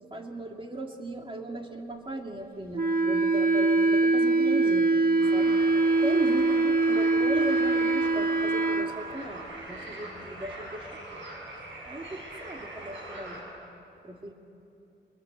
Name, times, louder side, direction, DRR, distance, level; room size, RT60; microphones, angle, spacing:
voice 1, 0.0-4.9 5.3-5.6 6.0-11.2 11.8-13.4 14.0-14.3, right 1 dB, 30° right, 2 dB, 2.6 m, -37 dB
Wind instrument woodwind instrument, 2.7-8.9, right 3 dB, 55° right, 1.7 m, -23 dB
sound 1, 5.2-13.4, right 1 dB, 85° right, 7.8 m, -42 dB
28.0 x 25.0 x 8.3 m, 2.7 s
cardioid pair, 85°, 19 cm